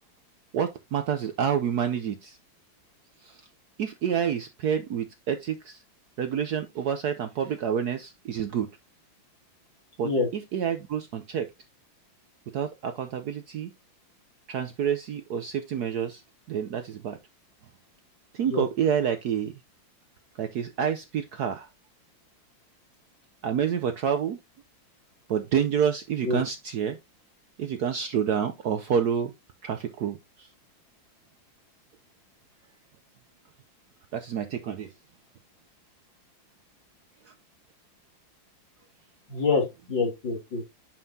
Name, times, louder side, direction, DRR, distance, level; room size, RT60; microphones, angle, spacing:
voice 1, 0.5-2.4 3.2-3.4 3.8-5.8 6.2-8.7 10.0-11.5 12.5-13.7 14.5-16.2 16.5-17.2 18.3-19.5 20.4-21.7 23.4-24.4 25.3-27.0 27.6-29.3 29.6-30.5 34.1-34.9, right 8 dB, 65° right, 1.0 m, -28 dB
voice 2, 39.3-40.6, left 3 dB, 65° left, 3.6 m, -26 dB
9.4 x 5.5 x 2.7 m
omnidirectional pair, 2.3 m